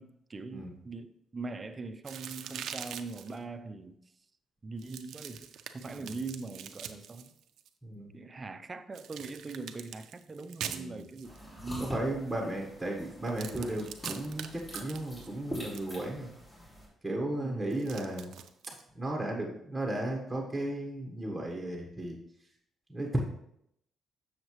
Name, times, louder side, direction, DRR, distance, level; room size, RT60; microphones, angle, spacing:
voice 1, 0.0-4.0 4.6-7.3 8.1-12.0 17.4-17.7, right 3 dB, 30° right, 0.6 m, -42 dB
sound 1, 2.0-3.4 4.8-7.7 8.9-11.4 13.2-15.9 17.7-18.8, right 9 dB, 75° right, 0.5 m, -44 dB
voice 2, 10.7-11.0 11.8-16.3 17.0-18.3 18.7-22.2 22.9-23.2, right 1 dB, 5° right, 1.3 m, -35 dB
sound 2, 11.2-16.9, equal, 25° left, 2.9 m, -44 dB
7.7 x 6.5 x 3.2 m
cardioid pair, 90°, 0 cm